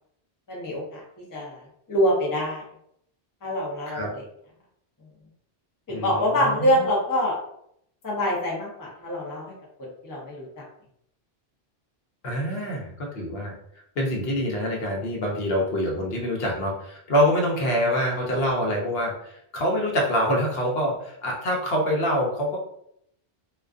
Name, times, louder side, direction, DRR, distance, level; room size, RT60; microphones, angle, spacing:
voice 1, 0.5-1.0 1.3-2.6 3.4-4.2 5.9-7.3 8.0-9.5 9.8-10.6, equal, 25° left, -4 dB, 0.5 m, -25 dB
voice 2, 5.9-6.9 12.2-13.5 14.0-22.6, equal, 70° left, -1 dB, 0.9 m, -25 dB
2.3 x 2.3 x 2.4 m, 0.73 s
omnidirectional pair, 1.1 m